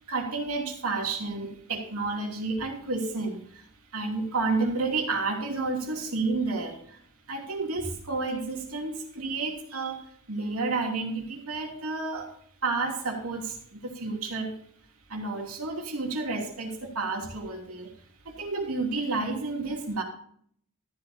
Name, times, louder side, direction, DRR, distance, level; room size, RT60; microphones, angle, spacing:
voice 1, 0.1-3.6 3.9-7.0 7.3-10.0 10.3-12.3 12.6-14.5 15.1-17.9 18.2-20.0, right 3 dB, 70° right, 1 dB, 2.9 m, -30 dB
13.5 x 11.5 x 2.8 m, 0.63 s
head